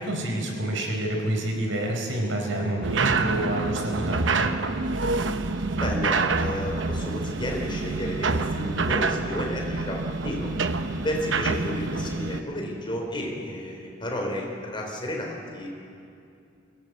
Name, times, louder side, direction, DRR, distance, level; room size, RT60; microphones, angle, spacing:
voice 1, 0.0-4.5, right 1 dB, 90° right, 1 dB, 4.4 m, -28 dB
sound 1, 2.8-12.4, right 3 dB, 70° right, 0.9 m, -27 dB
voice 2, 5.8-10.5 11.0-15.7, left 1 dB, 25° left, 0 dB, 4.0 m, -32 dB
23.0 x 17.0 x 8.0 m, 2.6 s
head